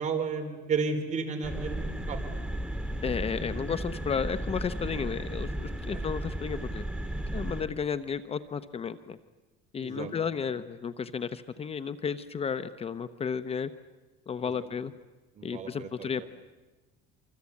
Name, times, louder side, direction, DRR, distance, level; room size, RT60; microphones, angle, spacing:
voice 1, 0.0-2.5 4.9-5.0 5.9-6.0 9.8-10.1 14.4-14.5 15.4-16.2, right 5 dB, 35° right, 5 dB, 4.3 m, -33 dB
sound 1, 1.4-7.6, right 1 dB, 5° right, 2.6 m, -34 dB
voice 2, 3.0-6.9 7.3-9.2 9.7-13.7 14.3-14.9 15.4-16.2, left 6 dB, 30° left, 12 dB, 0.8 m, -33 dB
27.5 x 25.5 x 8.5 m, 1.2 s
cardioid pair, 130°, 21 cm